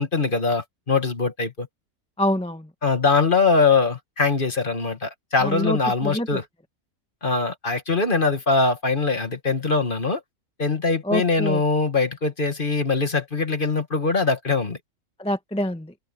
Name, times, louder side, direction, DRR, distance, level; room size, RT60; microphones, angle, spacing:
voice 1, 0.0-1.7 2.8-6.4 7.2-10.2 10.6-14.8, left 4 dB, 35° left, 2.0 m, -22 dB
voice 2, 2.2-2.7 5.4-6.4 11.0-11.6 15.2-15.9, equal, 5° left, 1.1 m, -26 dB
omnidirectional pair, 1.6 m